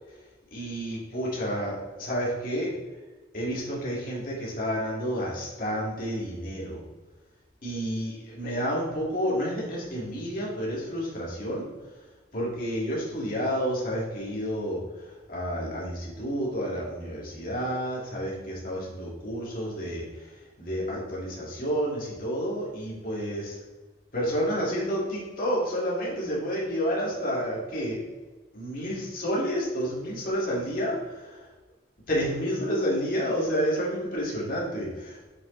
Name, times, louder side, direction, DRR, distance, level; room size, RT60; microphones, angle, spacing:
voice 1, 0.5-2.7 3.3-6.8 7.6-11.7 12.3-20.3 20.6-23.6 24.1-28.0 28.5-31.5 32.1-35.3, equal, 45° left, -5 dB, 2.0 m, -30 dB
7.6 x 5.2 x 3.2 m, 1.3 s
head